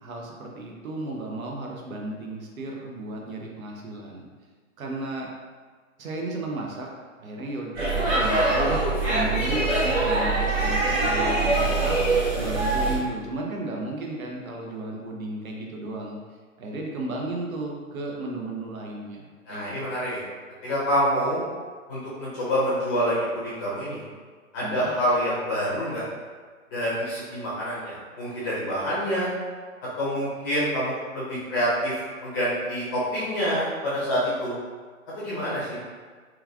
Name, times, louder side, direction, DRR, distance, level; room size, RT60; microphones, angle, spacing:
voice 1, 0.0-4.3 4.8-5.3 6.0-6.9 7.2-16.2 16.6-19.7 24.6-24.9, right 2 dB, 80° right, -1 dB, 0.8 m, -34 dB
Speech / Shout / Subway metro underground, 7.7-13.0, right 2 dB, 30° right, 1.3 m, -23 dB
voice 2, 19.5-20.2 20.6-21.5 21.9-24.0 24.5-26.0 26.7-29.3 30.0-34.6 35.2-35.8, equal, 15° left, -9 dB, 0.5 m, -27 dB
3.1 x 2.3 x 2.4 m, 1.5 s
hypercardioid pair, 140°, 42 cm